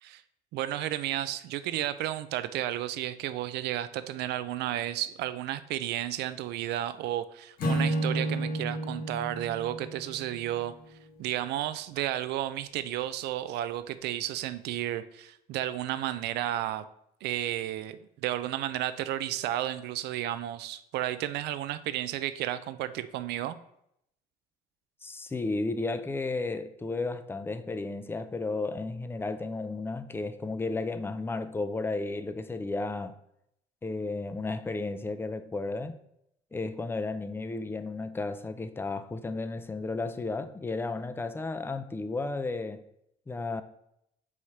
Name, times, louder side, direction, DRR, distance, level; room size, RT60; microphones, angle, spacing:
voice 1, 0.5-10.7 11.2-16.9 17.2-23.6, right 13 dB, 80° right, 0.5 m, -32 dB
Acoustic guitar / Strum, 7.6-10.9, right 1 dB, 60° left, 1.6 m, -31 dB
voice 2, 25.0-33.2 33.8-36.0 36.5-42.8 43.3-43.6, left 3 dB, 15° left, 0.5 m, -33 dB
4.8 x 4.2 x 5.7 m
cardioid pair, 110°, 17 cm